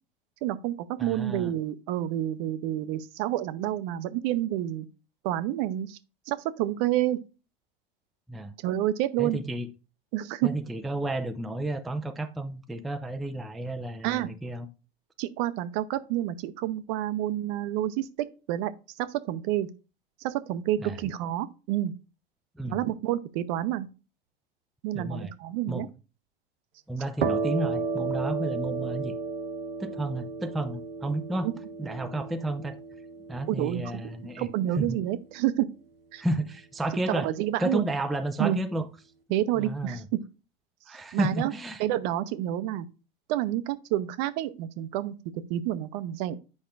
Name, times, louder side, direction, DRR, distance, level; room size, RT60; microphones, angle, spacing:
voice 1, 0.4-4.9 5.2-6.0 6.3-7.2 8.6-9.4 10.1-10.5 14.0-14.3 15.2-18.1 18.5-18.7 19.0-19.7 20.2-21.9 22.7-23.9 24.8-25.9 33.5-34.0 34.4-35.7 36.1-36.2 37.1-37.9 38.4-38.6 39.3-40.2 40.9-41.5 41.8-42.8 43.3-45.1 45.5-46.4, right 13 dB, 45° right, 0.7 m, -29 dB
voice 2, 1.0-1.5 8.3-8.5 9.2-9.7 10.4-14.7 20.8-21.0 22.6-22.8 24.9-25.3 25.7-25.9 26.9-29.1 29.8-31.5 31.8-32.8 33.3-34.5 34.8-35.0 36.2-37.3 37.6-38.9 39.6-40.1 40.9-41.8, right 1 dB, ahead, 0.4 m, -32 dB
sound 1, 27.2-34.7, right 4 dB, 75° right, 0.8 m, -33 dB
8.4 x 5.2 x 2.4 m
figure-of-eight pair, 85°, 29 cm